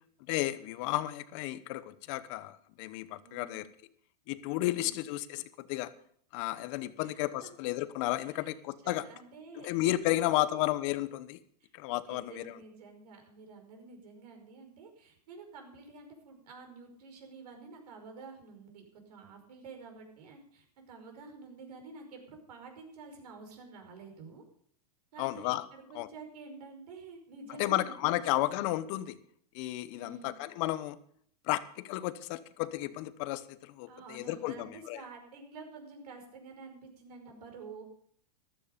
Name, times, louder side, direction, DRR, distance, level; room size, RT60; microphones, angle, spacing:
voice 1, 0.3-3.7 4.3-5.9 6.3-9.0 9.6-11.4 11.7-12.5 25.2-25.7 25.9-26.1 27.6-29.2 29.5-31.0 31.5-35.0, left 16 dB, 50° left, 15 dB, 1.0 m, -33 dB
voice 2, 3.2-3.6 4.6-5.0 7.0-7.5 8.2-8.6 8.8-9.7 10.1-10.6 11.6-11.7 12.0-24.4 25.1-28.1 30.0-30.4 33.9-37.8, right 4 dB, 70° right, 4 dB, 5.3 m, -49 dB
14.0 x 13.0 x 5.1 m, 0.62 s
hypercardioid pair, 130°, 21 cm